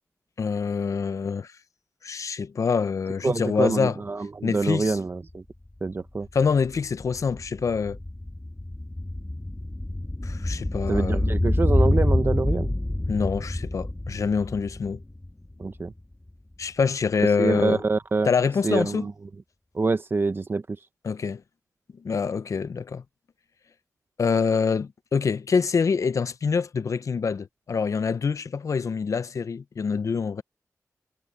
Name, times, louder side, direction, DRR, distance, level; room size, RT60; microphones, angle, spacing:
voice 1, 0.4-1.5 2.0-4.0 4.4-5.0 6.3-8.0 10.2-11.2 13.1-15.0 16.6-17.8 18.3-19.1 21.0-21.4 22.0-23.0 24.2-30.4, left 5 dB, 60° left, 0.7 m, -25 dB
voice 2, 3.2-5.4 5.8-6.3 10.9-12.7 15.6-15.9 17.4-18.3 18.6-19.1 19.7-20.6, right 3 dB, 40° right, 0.7 m, -26 dB
sound 1, 5.3-5.4 5.7-16.0 16.3-16.4, left 1 dB, 15° left, 1.5 m, -27 dB
wide cardioid pair, 90°, 6 cm